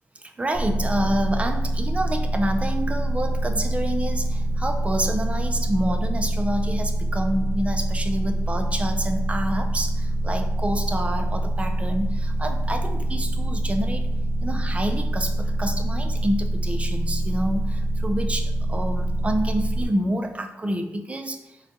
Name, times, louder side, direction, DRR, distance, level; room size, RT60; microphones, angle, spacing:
voice 1, 0.2-14.1 14.4-21.4, right 1 dB, 25° right, 6 dB, 0.3 m, -28 dB
sound 1, 0.5-19.9, right 1 dB, 30° left, 1.0 m, -25 dB
3.7 x 2.2 x 2.7 m, 0.95 s
cardioid pair, 80°, 5 cm